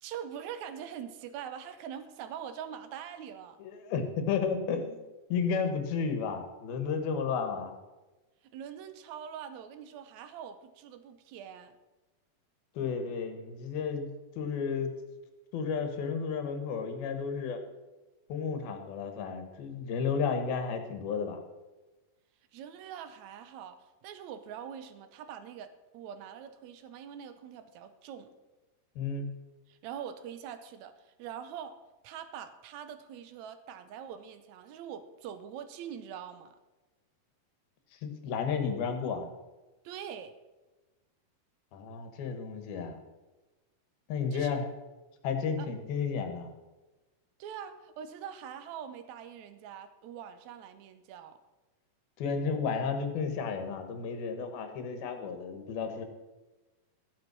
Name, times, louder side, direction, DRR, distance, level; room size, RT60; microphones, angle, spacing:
voice 1, 0.0-3.6 8.4-11.8 22.5-23.8 24.0-28.3 29.7-31.7 32.0-36.6 39.8-40.3 44.3-44.5 45.6-45.7 47.4-51.4, right 8 dB, 75° right, 10 dB, 1.7 m, -43 dB
voice 2, 3.6-5.0 5.3-7.8 12.8-14.9 15.5-17.6 18.3-21.4 29.0-29.3 38.0-39.3 41.7-43.0 44.1-44.7 45.2-46.5 52.2-56.0, left 5 dB, 80° left, 7 dB, 3.2 m, -32 dB
14.5 x 8.2 x 6.0 m, 1.1 s
omnidirectional pair, 4.3 m